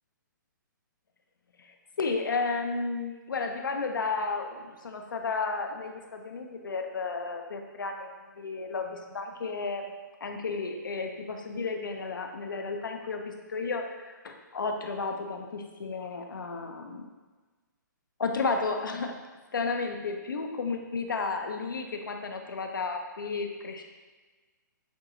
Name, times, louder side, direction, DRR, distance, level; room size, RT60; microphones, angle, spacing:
voice 1, 1.6-8.1 8.4-9.9 10.2-17.1 18.2-19.2 19.5-23.8, left 4 dB, 80° left, 4 dB, 0.6 m, -33 dB
7.1 x 2.7 x 2.6 m, 1.3 s
hypercardioid pair, 135°, 11 cm